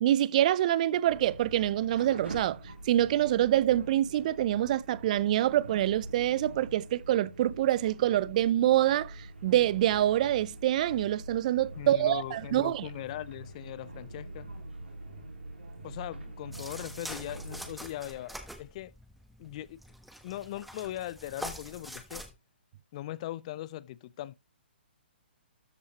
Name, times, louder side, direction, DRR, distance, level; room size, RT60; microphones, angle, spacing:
voice 1, 0.0-2.6 2.9-12.9, right 12 dB, 40° right, 0.4 m, -26 dB
sound 1, 1.0-17.7, right 1 dB, 80° right, 3.0 m, -45 dB
voice 2, 11.8-14.5 15.8-18.9 19.4-19.8 20.2-22.2 22.9-24.4, left 14 dB, 40° left, 0.4 m, -40 dB
sound 2, 16.5-22.3, equal, ahead, 1.1 m, -45 dB
13.0 x 5.5 x 2.9 m
figure-of-eight pair, 130°, 6 cm